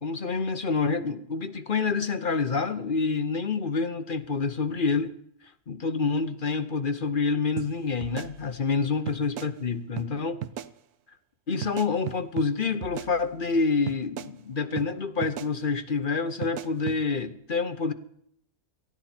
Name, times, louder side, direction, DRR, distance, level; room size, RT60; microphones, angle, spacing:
voice 1, 0.0-5.1 5.7-10.4 11.5-17.9, left 4 dB, 40° left, 11 dB, 0.9 m, -27 dB
sound 1, 7.6-7.7 8.0-8.8 9.1-9.5 10.0-10.1 10.4-10.7 11.6-12.5 12.8-13.5 13.9-14.3 14.8-14.9 15.2-15.5 16.4-17.0, right 10 dB, 80° right, 1.3 m, -36 dB
18.0 x 14.0 x 4.4 m, 0.68 s
omnidirectional pair, 1.6 m